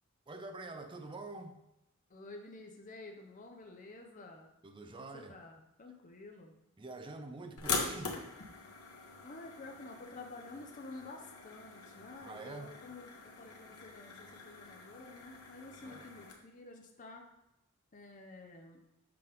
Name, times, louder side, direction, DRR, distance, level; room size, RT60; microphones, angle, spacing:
voice 1, 0.3-1.6 4.6-5.4 6.8-8.2 12.2-12.8 15.8-16.1, right 2 dB, 20° right, 6 dB, 0.5 m, -46 dB
voice 2, 2.1-4.5 4.9-6.5 9.2-17.2 17.9-18.8, left 2 dB, 35° left, 2 dB, 0.6 m, -50 dB
sound 1, 7.6-16.3, left 4 dB, 85° left, 1.2 m, -43 dB
6.8 x 5.3 x 3.4 m, 0.89 s
head